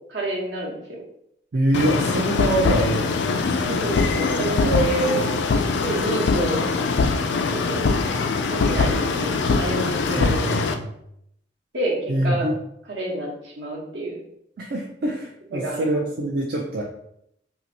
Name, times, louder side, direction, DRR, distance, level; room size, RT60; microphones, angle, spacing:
voice 1, 0.1-1.0 3.8-5.3 5.8-6.7 7.5-7.8 8.5-10.4 11.7-12.5 12.9-14.2 15.5-16.0, right 2 dB, 70° right, -2 dB, 1.0 m, -28 dB
voice 2, 1.5-3.2 3.6-3.8 10.2-10.9 12.1-12.5 14.6-16.8, right 1 dB, 55° right, -1 dB, 0.4 m, -24 dB
sound 1, 1.7-10.7, left 4 dB, 70° left, 0.3 m, -22 dB
2.8 x 2.5 x 4.0 m, 0.75 s
head